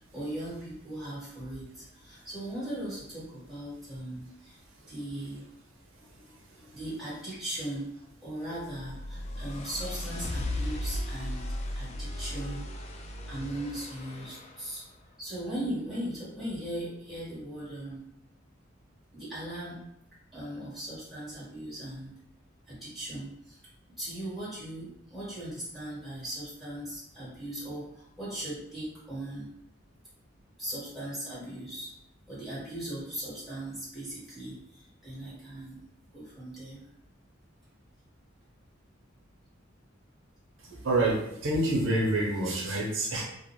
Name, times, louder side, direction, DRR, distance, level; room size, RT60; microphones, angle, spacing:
voice 1, 0.1-4.6 4.9-5.4 6.7-7.9 8.2-11.4 11.7-12.6 13.3-14.8 15.2-18.0 19.1-19.8 20.3-22.1 22.7-23.6 24.0-29.5 30.6-31.9 32.3-35.8 36.1-36.8, right 1 dB, ahead, -10 dB, 1.3 m, -38 dB
sound 1, 8.6-14.7, left 1 dB, 35° left, 0.3 m, -36 dB
voice 2, 40.8-41.2 41.4-43.2, right 2 dB, 80° right, -2 dB, 0.6 m, -26 dB
2.4 x 2.2 x 3.0 m, 0.76 s
head